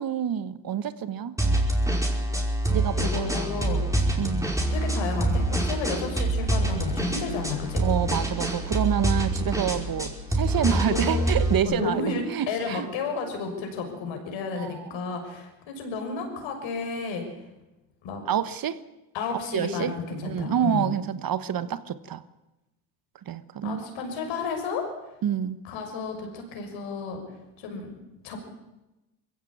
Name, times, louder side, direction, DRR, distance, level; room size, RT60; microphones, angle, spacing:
voice 1, 0.0-1.3 2.7-3.3 4.2-4.5 7.8-12.9 14.5-14.9 18.3-18.8 19.5-22.2 23.3-23.8 25.2-25.6, right 9 dB, 45° right, 14 dB, 1.3 m, -28 dB
sound 1, 1.4-11.6, right 1 dB, 5° right, 5.1 m, -26 dB
voice 2, 2.9-3.8 4.7-7.8 10.9-11.2 11.6-17.2 18.0-18.2 19.1-20.9 23.6-24.9 25.6-27.2 27.6-27.9 28.2-28.4, left 4 dB, 70° left, 4 dB, 6.5 m, -32 dB
21.5 x 16.0 x 8.7 m, 1.0 s
hypercardioid pair, 70°, 48 cm